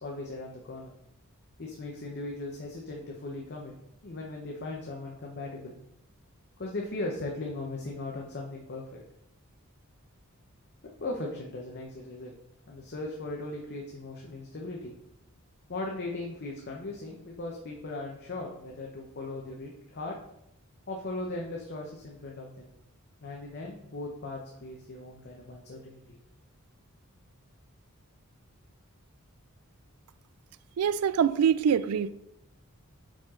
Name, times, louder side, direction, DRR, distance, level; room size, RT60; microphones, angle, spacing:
voice 1, 0.0-0.9 1.6-3.7 4.0-5.8 6.6-9.0 11.0-12.3 12.7-14.9 15.7-20.2 20.9-22.7 23.2-26.0, left 2 dB, 50° left, 0.8 m, -38 dB
voice 2, 30.8-32.1, right 7 dB, 90° right, 0.3 m, -24 dB
5.8 x 5.0 x 3.8 m
head